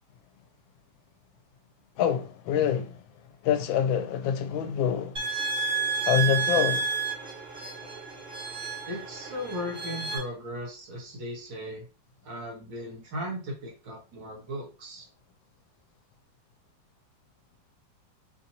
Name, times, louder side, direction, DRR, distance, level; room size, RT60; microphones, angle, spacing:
voice 1, 2.0-3.0 3.4-5.2 6.1-6.9, left 8 dB, 85° left, 1.3 m, -26 dB
sound 1, 5.2-10.2, right 6 dB, 40° right, 0.8 m, -31 dB
voice 2, 8.9-11.9 12.2-15.0, equal, 70° right, 1.9 m, -37 dB
4.3 x 2.7 x 2.7 m
omnidirectional pair, 2.1 m